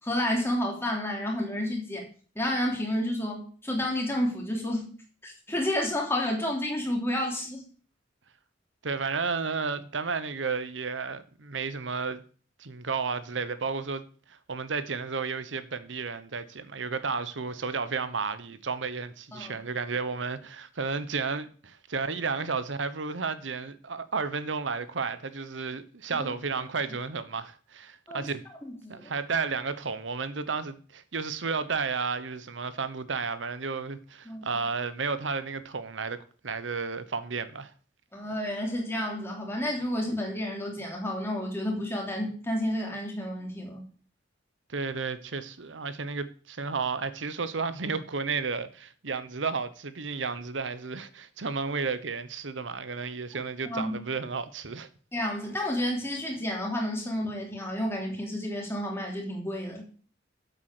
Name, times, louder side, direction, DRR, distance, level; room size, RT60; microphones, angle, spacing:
voice 1, 0.0-2.1 2.3-4.9 5.2-7.6 19.3-19.6 26.2-26.3 28.1-28.3 28.6-29.1 34.2-34.4 38.1-43.8 53.7-54.0 55.1-59.9, left 1 dB, 15° left, 3.0 m, -30 dB
voice 2, 8.8-12.2 12.6-28.4 28.9-37.7 44.7-54.9, right 4 dB, 90° right, 1.0 m, -32 dB
8.2 x 7.7 x 6.7 m
head